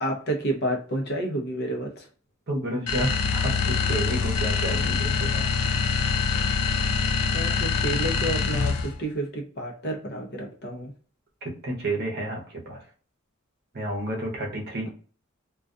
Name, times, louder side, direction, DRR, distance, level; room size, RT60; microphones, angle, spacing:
voice 1, 0.0-2.0 7.3-10.9, right 1 dB, 50° left, 1 dB, 0.6 m, -30 dB
voice 2, 2.5-5.5 11.4-12.8 13.7-14.9, right 1 dB, 45° right, 0 dB, 0.7 m, -30 dB
sound 1, 2.9-9.0, left 5 dB, 85° left, 0.4 m, -25 dB
2.3 x 2.3 x 2.4 m, 0.41 s
head